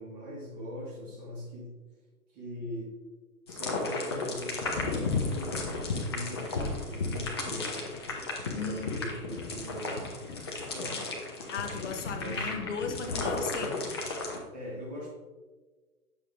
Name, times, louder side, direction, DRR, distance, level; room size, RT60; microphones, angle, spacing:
voice 1, 0.0-1.7 2.3-2.9 3.5-6.5 6.8-8.1 8.5-10.2 10.6-11.1 12.1-12.5 14.5-15.1, equal, 35° right, -5 dB, 1.7 m, -41 dB
sound 1, 3.5-14.4, left 3 dB, 20° left, 0.4 m, -34 dB
voice 2, 8.5-8.9 11.5-14.0, left 5 dB, 55° left, 5 dB, 0.9 m, -36 dB
7.7 x 6.0 x 2.5 m, 1.3 s
figure-of-eight pair, 120°, 45 cm